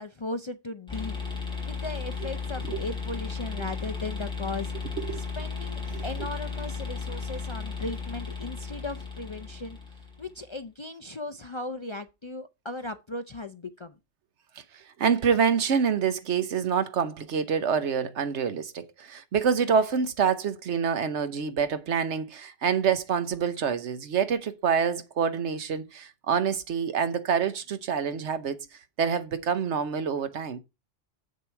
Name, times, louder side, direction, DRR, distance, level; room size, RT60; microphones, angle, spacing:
voice 1, 0.0-4.7 5.4-14.0, left 2 dB, 40° left, 0.4 m, -37 dB
sound 1, 0.9-10.4, left 5 dB, 5° left, 3.5 m, -35 dB
voice 2, 14.7-28.7 29.0-30.6, right 6 dB, 80° right, 1.2 m, -26 dB
7.7 x 6.7 x 4.5 m
omnidirectional pair, 1.2 m